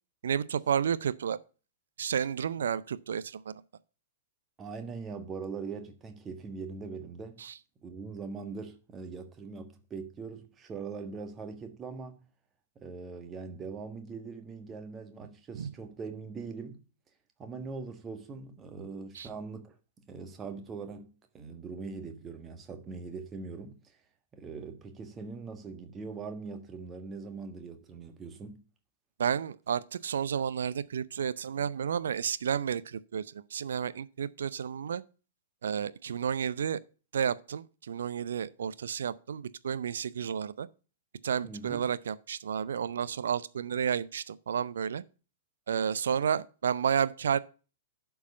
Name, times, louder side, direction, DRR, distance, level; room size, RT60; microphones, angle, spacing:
voice 1, 0.2-1.4 2.0-3.6 7.4-7.5 15.6-15.7 19.2-19.3 29.2-35.0 35.6-36.8 37.1-40.7 41.2-45.0 45.7-47.4, right 8 dB, 65° right, 0.5 m, -31 dB
voice 2, 4.6-7.4 7.8-12.2 12.7-16.8 17.4-19.7 20.1-24.0 24.3-28.6 41.4-41.8, right 4 dB, 20° right, 1.5 m, -41 dB
11.5 x 4.7 x 5.3 m
figure-of-eight pair, 105°, 0 cm